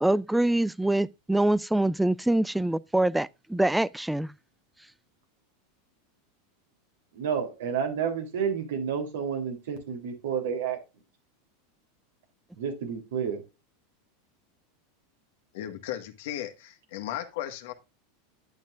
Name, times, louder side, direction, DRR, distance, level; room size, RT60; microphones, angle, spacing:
voice 1, 0.0-4.3, right 1 dB, 5° right, 0.4 m, -25 dB
voice 2, 7.1-10.8 12.6-13.4, right 7 dB, 75° right, 3.1 m, -30 dB
voice 3, 15.5-17.7, left 12 dB, 70° left, 1.6 m, -36 dB
10.5 x 9.2 x 2.5 m
hypercardioid pair, 100°, 0 cm